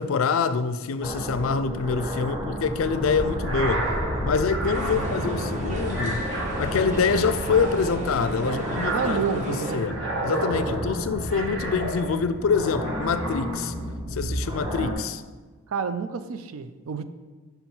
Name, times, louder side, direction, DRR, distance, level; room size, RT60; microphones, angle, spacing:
voice 1, 0.0-3.9 4.2-6.2 6.6-13.7 14.1-15.2, left 5 dB, 70° left, 0.4 m, -26 dB
sound 1, 1.0-14.9, equal, 10° right, 0.8 m, -32 dB
voice 2, 2.2-2.6 4.8-5.2 8.4-9.8 10.5-10.9 15.7-17.0, right 6 dB, 80° right, 0.4 m, -31 dB
sound 2, 3.3-12.4 12.8-13.9, right 2 dB, 60° right, 1.2 m, -33 dB
sound 3, 4.6-9.8, right 1 dB, 35° right, 1.2 m, -34 dB
5.5 x 4.5 x 5.4 m
head